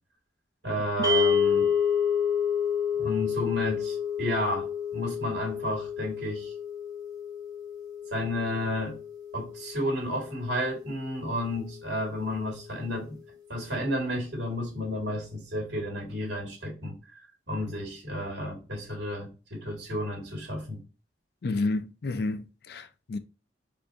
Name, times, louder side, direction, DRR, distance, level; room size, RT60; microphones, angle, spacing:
voice 1, 0.6-1.7 3.0-6.5 8.1-8.9 9.3-13.2 13.5-20.8, left 1 dB, 85° right, 2.2 m, -32 dB
sound 1, 1.0-11.3, left 6 dB, 20° right, 0.8 m, -29 dB
voice 2, 21.4-23.2, left 3 dB, 60° left, 0.4 m, -30 dB
4.5 x 2.6 x 2.7 m
head